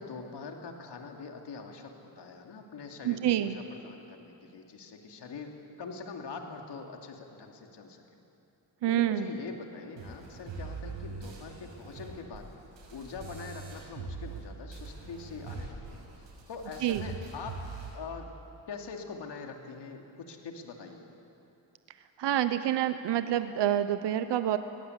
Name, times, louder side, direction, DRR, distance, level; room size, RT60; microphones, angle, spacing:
voice 1, 0.0-8.0 8.9-12.5 12.9-17.6 17.9-18.3 18.7-21.1, left 4 dB, 70° left, 3 dB, 2.9 m, -43 dB
voice 2, 3.0-3.6 8.8-9.3 16.8-17.0 22.2-24.6, right 12 dB, 70° right, 11 dB, 0.9 m, -27 dB
sound 1, 10.0-14.4 14.7-18.0, right 4 dB, 85° right, 6.1 m, -43 dB
24.0 x 18.0 x 8.2 m, 2.8 s
cardioid pair, 60°, 43 cm